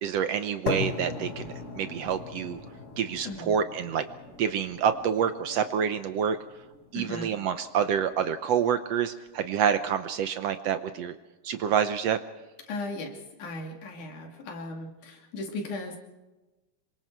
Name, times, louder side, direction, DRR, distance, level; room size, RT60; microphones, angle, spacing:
voice 1, 0.0-2.6 3.0-4.0 4.4-6.4 6.9-11.2 11.4-12.2, right 8 dB, 70° right, 9 dB, 1.7 m, -27 dB
sound 1, 0.7-8.7, left 4 dB, 40° left, 1.2 m, -39 dB
voice 2, 6.9-7.3 12.7-16.0, left 2 dB, 80° left, 2 dB, 4.1 m, -37 dB
27.0 x 24.0 x 4.7 m, 1.1 s
omnidirectional pair, 3.5 m